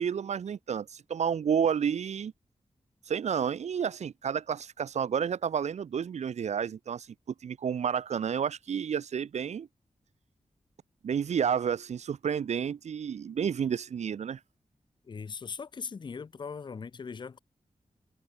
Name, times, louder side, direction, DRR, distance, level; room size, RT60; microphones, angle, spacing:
voice 1, 0.0-2.3 3.0-9.7 11.0-14.4, right 7 dB, 70° right, 0.4 m, -30 dB
voice 2, 15.0-17.4, left 5 dB, 40° left, 0.4 m, -39 dB
wide cardioid pair, 90°, 12 cm